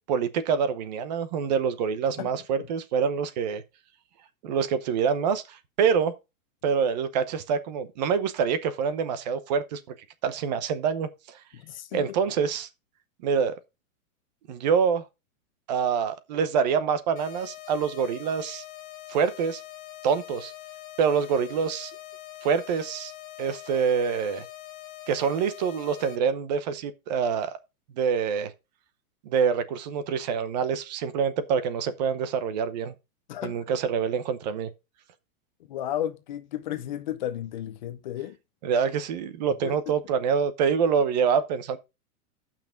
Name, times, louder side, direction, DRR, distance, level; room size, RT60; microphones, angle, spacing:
voice 1, 0.1-3.6 4.4-6.1 6.6-9.8 10.2-11.4 11.9-12.7 13.2-13.5 14.5-15.0 15.7-18.6 19.1-19.6 20.0-20.5 21.0-21.9 22.4-23.1 23.4-24.4 25.1-27.5 28.0-28.5 29.2-32.9 33.4-34.7 38.6-41.8, right 6 dB, 30° right, 0.8 m, -26 dB
voice 2, 11.5-12.0 33.3-33.6 35.7-38.4 39.6-39.7, left 11 dB, 30° left, 0.7 m, -33 dB
sound 1, 17.2-26.2, left 15 dB, 50° left, 1.6 m, -43 dB
9.1 x 6.0 x 5.0 m
supercardioid pair, 175°, 45 cm